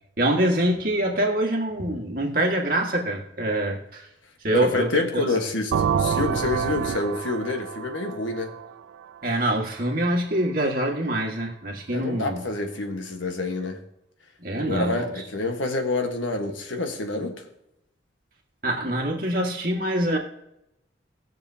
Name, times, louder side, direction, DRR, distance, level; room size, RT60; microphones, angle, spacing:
voice 1, 0.2-4.1 4.4-5.0 9.2-12.4 14.4-15.1 18.6-20.2, right 1 dB, 50° right, 0 dB, 1.8 m, -25 dB
voice 2, 4.5-8.5 11.9-13.8 14.6-17.4, left 2 dB, 90° left, 5 dB, 1.4 m, -27 dB
sound 1, 5.7-9.4, right 7 dB, 80° right, 0.4 m, -27 dB
19.5 x 6.8 x 2.8 m, 0.81 s
head